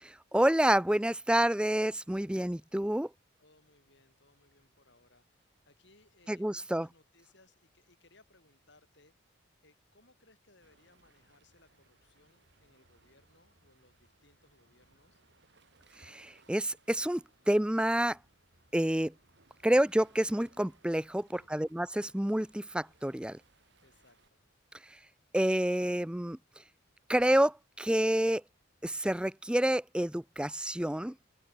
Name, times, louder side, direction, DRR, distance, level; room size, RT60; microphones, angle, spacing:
voice 1, 0.3-3.1 6.3-6.9 16.0-18.2 18.7-19.1 19.6-23.4 25.3-26.4 27.1-28.4 28.8-31.1, right 1 dB, 5° right, 0.5 m, -28 dB
voice 2, 3.4-9.1 9.6-15.2 21.3-21.5 23.8-24.5, left 2 dB, 55° left, 6.0 m, -65 dB
Waves surf, 10.6-24.3, right 3 dB, 55° right, 5.4 m, -66 dB
head